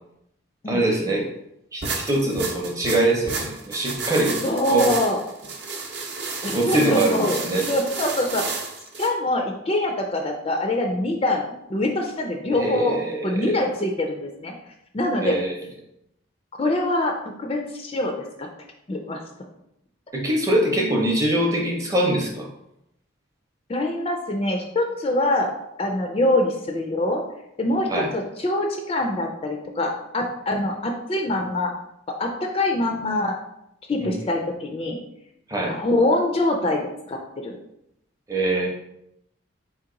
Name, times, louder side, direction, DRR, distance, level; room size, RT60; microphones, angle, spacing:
voice 1, 0.7-1.3 1.7-4.4 4.7-4.9 6.5-7.6 12.5-13.6 15.2-15.6 20.1-22.5 27.9-28.1 34.0-34.1 35.5-35.8 38.3-38.7, right 1 dB, 15° right, 0 dB, 0.6 m, -23 dB
sound 1, 1.8-9.1, right 4 dB, 55° right, 0.6 m, -31 dB
voice 2, 4.4-5.2 6.4-7.4 7.7-8.6 9.0-13.0 13.2-14.5 14.9-15.4 16.6-18.5 18.9-19.2 23.7-25.5 25.8-27.2 27.6-31.7 32.2-33.4 33.9-35.0 35.7-36.8 37.1-37.6, left 1 dB, 30° left, 2 dB, 0.3 m, -24 dB
4.0 x 2.9 x 3.7 m, 0.81 s
head